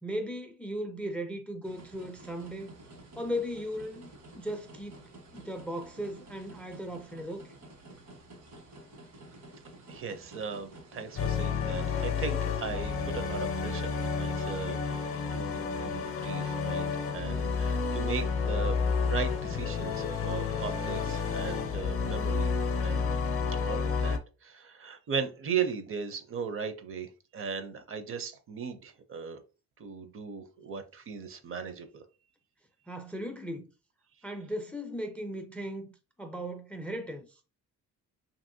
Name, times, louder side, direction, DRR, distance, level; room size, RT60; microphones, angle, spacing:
voice 1, 0.0-2.7 3.2-4.1 4.3-5.0 5.3-7.4 32.9-33.7 34.2-35.9 36.2-37.4, equal, 5° left, 0.3 m, -37 dB
sound 1, 1.6-21.6, right 1 dB, 80° right, 1.5 m, -51 dB
voice 2, 9.9-22.6 22.8-23.1 23.6-29.4 29.8-32.0, right 6 dB, 45° right, 0.5 m, -37 dB
sound 2, 11.2-24.2, left 5 dB, 45° left, 0.6 m, -30 dB
2.8 x 2.6 x 2.6 m
cardioid pair, 90°, 30 cm